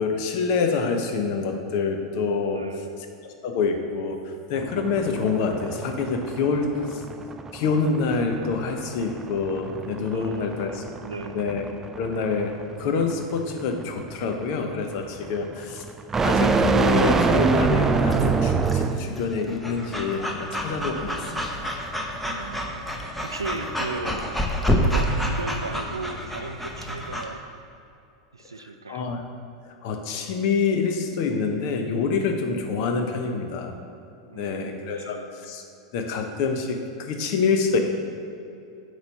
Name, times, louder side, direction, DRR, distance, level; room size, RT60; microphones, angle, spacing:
voice 1, 0.0-2.6 3.2-7.0 7.5-10.8 11.3-11.6 12.0-15.8 16.2-21.7 28.9-29.2 29.6-33.7 34.3-35.6 35.9-37.8, left 4 dB, 50° left, 5 dB, 0.8 m, -26 dB
voice 2, 2.5-3.0 10.1-11.5 22.2-22.8 23.2-24.3 24.8-27.4 28.3-29.1 34.3-35.3, right 3 dB, 85° right, 8 dB, 0.4 m, -36 dB
sound 1, 4.6-19.1, right 4 dB, 15° right, 0.3 m, -26 dB
Breathing / Dog, 18.1-27.3, equal, 5° left, 0.7 m, -29 dB
8.2 x 3.2 x 5.4 m, 2.7 s
figure-of-eight pair, 90°, 2 cm